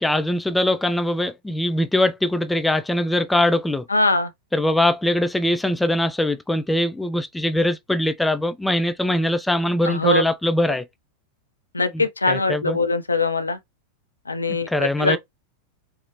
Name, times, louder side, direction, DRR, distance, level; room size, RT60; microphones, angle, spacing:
voice 1, 0.0-3.8 4.5-10.8 11.9-12.8 14.5-15.2, left 1 dB, 5° left, 0.3 m, -22 dB
voice 2, 3.9-4.3 9.9-10.2 11.7-13.6 14.3-15.2, left 3 dB, 80° left, 0.4 m, -22 dB
3.7 x 2.0 x 2.9 m
figure-of-eight pair, 90°, 0 cm